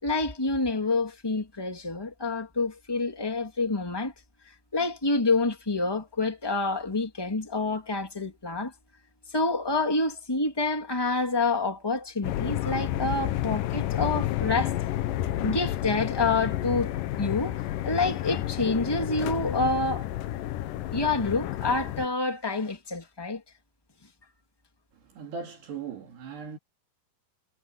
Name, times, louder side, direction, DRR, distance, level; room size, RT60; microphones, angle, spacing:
voice 1, 0.0-4.1 4.7-8.7 9.3-14.7 15.4-16.9 17.2-20.0 20.9-23.4, left 3 dB, 10° left, 1.3 m, -27 dB
sound 1, 12.2-22.1, left 13 dB, 85° left, 1.9 m, -30 dB
voice 2, 24.9-26.6, right 5 dB, 65° right, 4.9 m, -39 dB
omnidirectional pair, 5.2 m